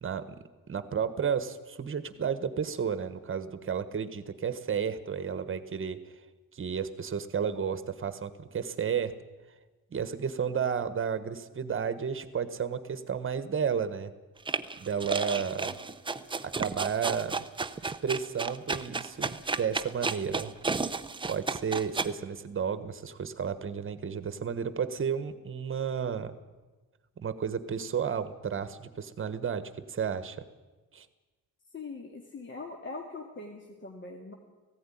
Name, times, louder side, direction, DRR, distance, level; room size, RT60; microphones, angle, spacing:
voice 1, 0.0-6.0 6.5-9.1 9.9-14.1 14.8-15.8 16.4-17.4 17.8-20.5 21.3-26.3 27.2-30.4 30.9-31.1, right 7 dB, 35° right, 13 dB, 1.3 m, -32 dB
sound 1, 14.5-22.1, right 4 dB, 15° right, 0.6 m, -33 dB
voice 2, 31.7-34.4, left 3 dB, 35° left, 2 dB, 2.0 m, -42 dB
18.5 x 16.0 x 10.0 m, 1.2 s
wide cardioid pair, 170°, 34 cm